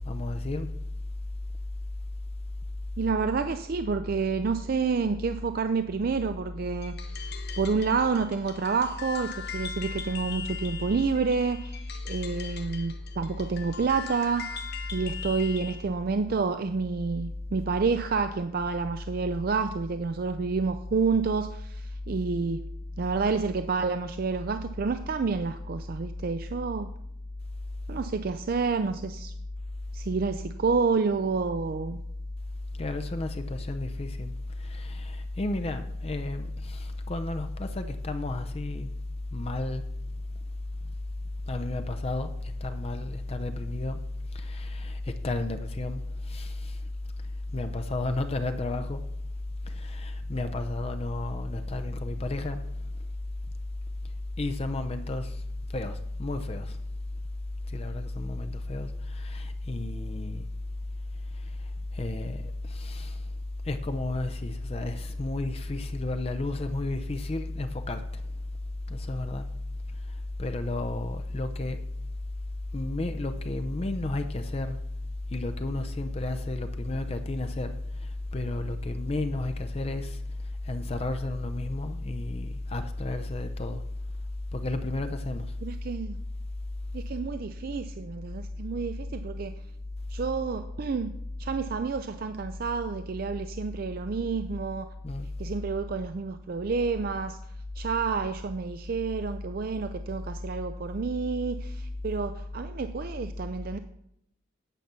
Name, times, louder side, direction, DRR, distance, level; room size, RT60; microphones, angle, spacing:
voice 1, 0.1-0.7 32.8-34.3 34.6-38.9 39.3-39.8 41.5-42.3 42.6-44.0 44.3-46.0 46.3-46.7 47.5-49.0 49.7-52.6 54.4-55.3 55.7-56.7 57.7-60.4 61.9-63.1 63.7-68.0 68.9-69.5 70.4-71.8 72.7-74.8 75.3-77.8 78.3-80.2 80.7-83.8 84.5-85.4 95.0-95.3, left 2 dB, 30° left, 0.5 m, -32 dB
voice 2, 3.0-14.5 14.9-22.7 23.0-26.9 27.9-29.3 29.9-32.0 85.6-86.2 86.9-89.6 90.1-91.1 91.4-94.9 95.4-97.4 97.8-103.8, right 4 dB, 45° right, 0.4 m, -29 dB
sound 1, 6.8-15.8, left 7 dB, 50° left, 1.0 m, -41 dB
9.2 x 5.8 x 6.8 m
head